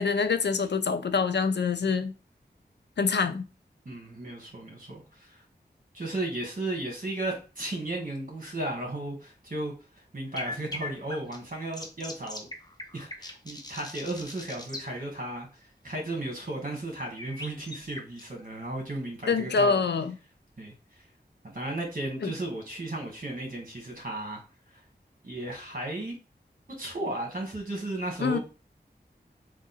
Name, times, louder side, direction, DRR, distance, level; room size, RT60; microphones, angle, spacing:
voice 1, 0.0-2.1 3.0-3.4 19.3-20.1 22.2-22.3 28.2-28.4, left 5 dB, 80° left, 0.5 m, -25 dB
voice 2, 3.8-5.4 5.9-12.5 12.9-19.7 20.6-20.7 21.4-24.4 25.2-26.2 26.7-28.4, right 1 dB, 50° right, 1.7 m, -35 dB
sound 1, 10.3-14.9 17.2-18.4, left 2 dB, 25° left, 0.7 m, -40 dB
3.6 x 2.6 x 4.1 m
wide cardioid pair, 70°, 18 cm